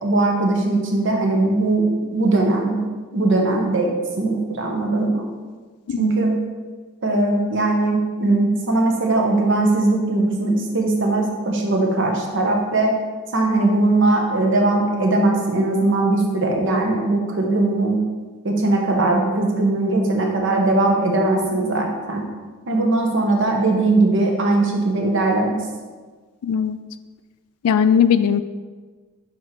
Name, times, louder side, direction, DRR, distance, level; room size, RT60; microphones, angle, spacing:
voice 1, 0.0-2.8 3.1-5.3 6.0-6.4 7.0-13.0 13.3-18.0 18.4-22.3 22.7-25.6, right 2 dB, 55° right, 1 dB, 0.9 m, -20 dB
voice 2, 26.4-26.8 27.6-28.4, left 7 dB, 85° left, 12 dB, 0.3 m, -18 dB
7.2 x 3.0 x 4.5 m, 1.4 s
head